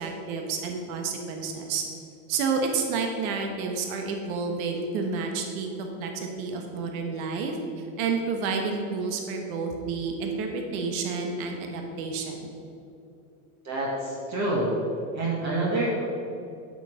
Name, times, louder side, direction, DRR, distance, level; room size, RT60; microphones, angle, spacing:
voice 1, 0.0-1.8 2.3-12.5, right 4 dB, 70° right, 3 dB, 1.3 m, -30 dB
voice 2, 13.6-14.7 15.1-16.0, right 2 dB, 40° right, -4 dB, 1.9 m, -27 dB
8.2 x 6.6 x 5.1 m, 2.8 s
hypercardioid pair, 95°, 43 cm